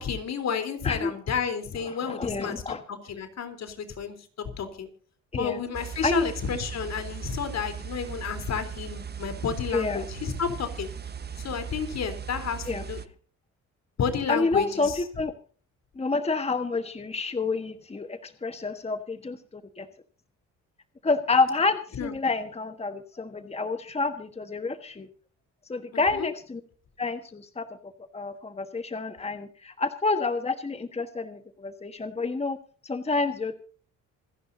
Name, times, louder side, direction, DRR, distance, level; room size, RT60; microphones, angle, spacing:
voice 1, 0.0-4.1 4.6-4.9 5.3-10.9 11.4-13.0 14.0-15.0 21.9-22.1 25.9-26.3, left 6 dB, 60° left, 9 dB, 3.7 m, -31 dB
voice 2, 1.9-2.8 5.3-5.6 6.0-6.2 9.7-10.1 12.7-12.8 14.3-15.3 16.0-19.9 21.0-25.1 25.7-26.6 27.0-27.7 28.1-32.6 32.8-33.6, left 3 dB, 20° left, 9 dB, 1.4 m, -28 dB
sound 1, 5.7-13.1, right 7 dB, 35° right, 1.3 m, -38 dB
27.0 x 11.0 x 2.8 m, 0.43 s
cardioid pair, 90°, 30 cm